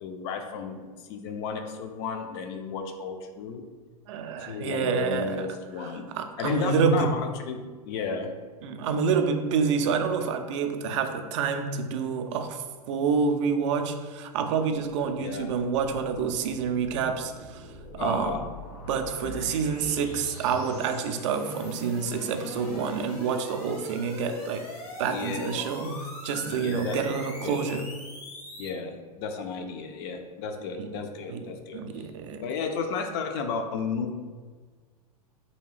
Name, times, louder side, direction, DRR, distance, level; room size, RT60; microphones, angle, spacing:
voice 1, 0.0-3.6 4.4-6.1 6.4-7.6 7.9-8.3 15.2-15.5 18.0-18.4 19.4-19.5 25.0-25.7 26.5-27.0 27.4-27.7 28.6-32.1 32.4-34.1, left 5 dB, 45° left, 5 dB, 0.4 m, -33 dB
voice 2, 4.1-5.5 5.8-5.9 6.1-7.1 8.6-17.7 17.9-18.4 18.9-24.7 25.0-27.8 30.8-31.0 31.3-32.5, right 5 dB, 50° right, 6 dB, 0.4 m, -28 dB
sound 1, 15.4-28.7, left 1 dB, 75° left, 1.2 m, -42 dB
3.2 x 2.7 x 3.1 m, 1.4 s
figure-of-eight pair, 95°, 20 cm